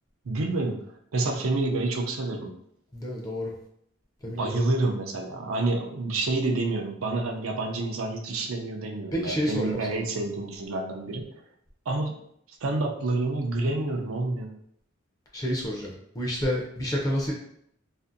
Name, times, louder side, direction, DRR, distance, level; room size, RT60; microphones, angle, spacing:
voice 1, 0.2-0.8 1.1-2.5 4.3-11.3 11.9-12.1 12.6-14.5, right 2 dB, 90° right, 2 dB, 0.5 m, -28 dB
voice 2, 2.9-3.5 4.2-4.6 9.1-10.0 15.3-17.3, equal, 15° left, -2 dB, 0.4 m, -29 dB
2.5 x 2.5 x 2.5 m, 0.71 s
head